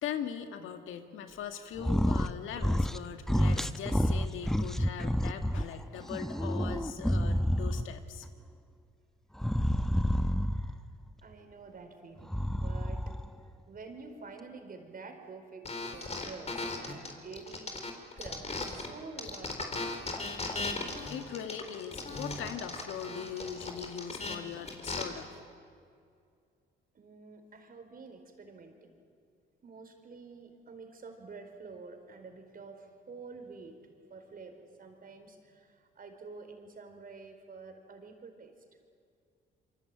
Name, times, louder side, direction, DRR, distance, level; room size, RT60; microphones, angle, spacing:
voice 1, 0.0-8.3 20.5-25.4, left 8 dB, 85° left, 7 dB, 2.0 m, -41 dB
sound 1, 1.8-2.3 2.6-3.0 3.3-5.6 6.1-8.0 9.4-10.8 12.2-13.3, equal, ahead, 1.0 m, -29 dB
voice 2, 9.7-10.8 11.2-13.2 13.7-17.8 18.2-19.6 26.9-28.9 29.6-33.8 34.1-38.5, right 4 dB, 45° right, 6 dB, 4.5 m, -49 dB
sound 2, 15.6-18.9 19.2-25.0, left 3 dB, 35° left, 4.2 m, -37 dB
27.0 x 24.0 x 9.0 m, 2.3 s
cardioid pair, 90°, 20 cm